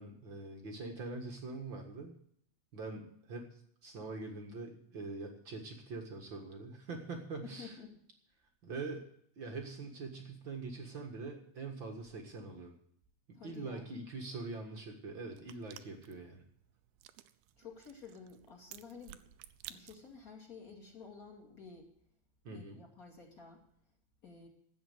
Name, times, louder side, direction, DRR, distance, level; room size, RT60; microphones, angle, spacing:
voice 1, 0.0-2.2 2.7-7.7 8.6-9.0 9.3-12.7 13.4-16.4 22.4-22.8, right 3 dB, 50° right, 3 dB, 1.5 m, -43 dB
voice 2, 7.4-7.9 13.4-13.9 17.6-19.2 19.7-21.9 22.5-23.6 24.2-24.5, left 5 dB, 30° left, 1 dB, 2.0 m, -51 dB
sound 1, 15.3-20.3, right 13 dB, 85° right, 2.6 m, -55 dB
12.5 x 8.6 x 7.9 m, 0.68 s
omnidirectional pair, 4.6 m